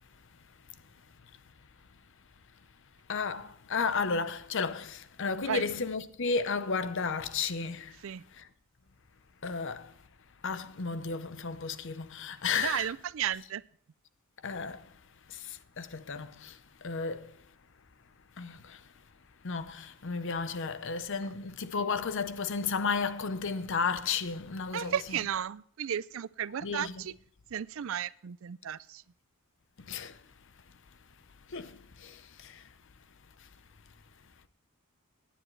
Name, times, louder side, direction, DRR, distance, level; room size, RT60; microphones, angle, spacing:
voice 1, 3.1-7.9 8.4-8.5 9.4-9.9 10.4-12.9 14.4-14.8 15.3-15.4 15.8-16.5 16.8-17.3 18.4-18.8 19.4-25.2 26.6-27.0 29.9-30.1 31.5-31.8 32.0-32.5, left 5 dB, 60° left, 0.8 m, -33 dB
voice 2, 12.6-13.6 21.2-21.3 24.7-27.1 27.5-29.0, right 9 dB, 65° right, 0.4 m, -34 dB
17.5 x 10.0 x 3.2 m
head